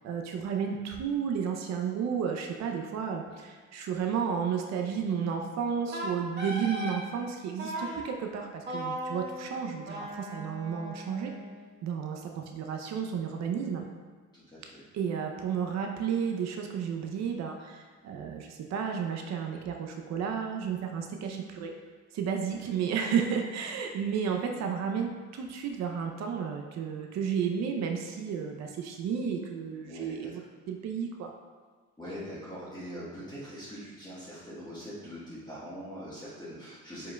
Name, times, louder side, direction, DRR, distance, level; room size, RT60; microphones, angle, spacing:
voice 1, 0.0-11.3 11.8-13.9 14.9-21.7 22.1-30.4 30.7-31.3, right 7 dB, 65° right, 3 dB, 0.5 m, -32 dB
Wind instrument woodwind instrument, 5.9-7.0 7.6-8.0 8.7-11.7, equal, 35° right, 1.5 m, -38 dB
voice 2, 14.3-14.8 22.5-22.6 29.8-30.3 32.0-37.1, equal, 15° left, -10 dB, 1.3 m, -42 dB
5.1 x 4.5 x 2.2 m, 1.5 s
cardioid pair, 100°, 30 cm